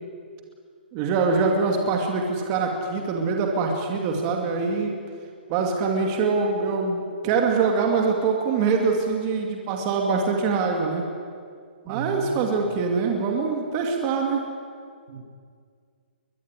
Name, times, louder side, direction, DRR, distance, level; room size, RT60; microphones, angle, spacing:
voice 1, 0.9-5.0 5.5-11.0 11.9-14.4, right 4 dB, 25° right, 2 dB, 2.5 m, -24 dB
voice 2, 11.8-12.8 15.1-15.3, right 5 dB, 90° right, 1 dB, 7.2 m, -36 dB
23.0 x 20.0 x 10.0 m, 2.1 s
hypercardioid pair, 170°, 6 cm